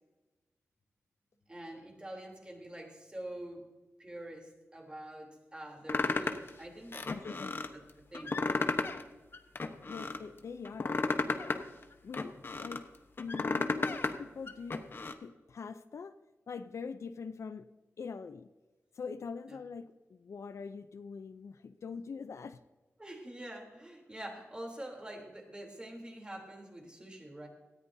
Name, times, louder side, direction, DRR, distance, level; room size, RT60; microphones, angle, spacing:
voice 1, 1.5-3.6 4.0-7.4 7.7-8.4 19.5-19.6 23.0-27.5, right 1 dB, 20° right, 0 dB, 3.5 m, -46 dB
sound 1, 5.9-6.5 6.9-7.7 8.1-9.0 9.3-10.2 10.6-12.8 13.2-14.1 14.5-15.1, left 3 dB, 50° left, 1.1 m, -33 dB
voice 2, 7.1-7.6 9.8-11.6 12.0-12.8 13.2-14.8 15.2-16.1 16.5-17.7 18.0-18.5 19.0-22.6, left 5 dB, 70° left, 11 dB, 0.6 m, -43 dB
18.5 x 14.0 x 2.8 m, 1.1 s
wide cardioid pair, 100°, 5 cm